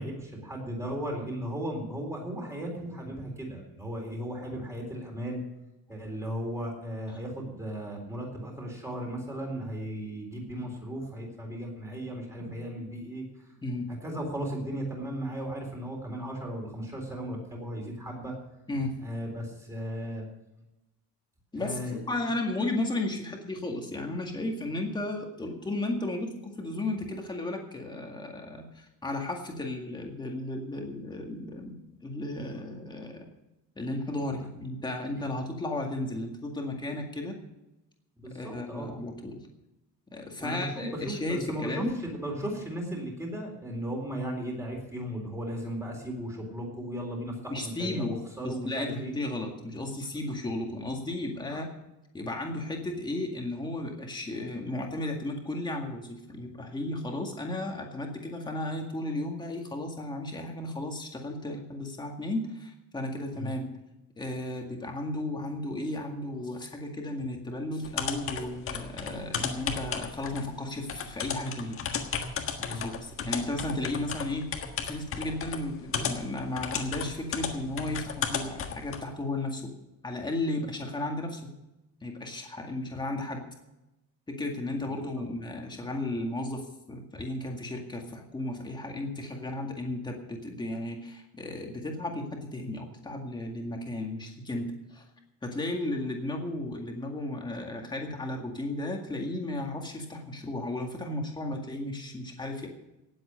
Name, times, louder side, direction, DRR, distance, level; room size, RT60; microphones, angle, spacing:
voice 1, 0.0-5.4 5.9-13.3 14.0-18.3 19.0-20.2 21.6-22.0 38.2-38.9 40.4-49.1 51.5-51.6 63.3-63.5 72.7-72.8 84.8-85.0, equal, 10° right, 0 dB, 3.9 m, -36 dB
voice 2, 21.5-31.8 32.0-33.3 33.8-37.4 38.3-39.4 40.1-41.9 47.5-48.1 48.4-51.7 52.1-63.7 64.2-71.8 72.6-74.4 74.8-79.7 80.0-81.4 82.0-83.4 84.3-86.6 86.9-95.0 95.4-102.7, left 2 dB, 10° left, 2 dB, 2.0 m, -34 dB
sound 1, 67.8-79.0, left 6 dB, 35° left, 1.5 m, -34 dB
18.0 x 7.9 x 6.3 m, 0.96 s
cardioid pair, 180°, 36 cm